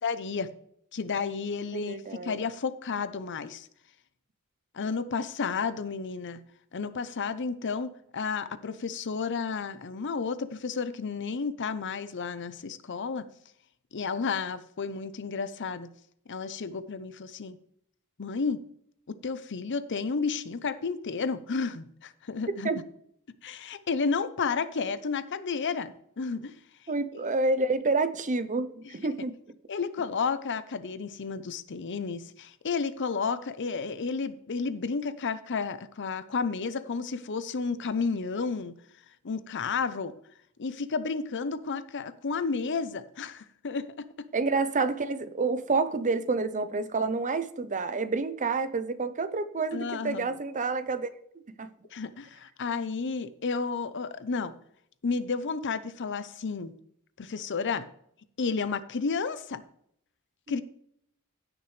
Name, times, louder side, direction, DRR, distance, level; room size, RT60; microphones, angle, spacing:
voice 1, 0.0-0.5 0.9-3.7 4.7-6.4 6.7-13.3 13.9-15.9 16.3-17.6 18.2-18.6 19.1-22.7 23.4-26.5 26.8-26.9 29.7-38.8 39.2-40.1 40.6-44.3 49.7-50.3 51.9-54.5 55.0-56.7 57.2-57.8 58.4-59.6 60.5-60.6, left 5 dB, 55° left, 13 dB, 0.7 m, -32 dB
voice 2, 1.7-2.4 22.6-22.8 26.9-29.3 44.3-51.1 51.6-51.7 60.5-60.6, right 3 dB, 35° right, 12 dB, 0.6 m, -28 dB
16.5 x 6.2 x 3.3 m, 0.70 s
head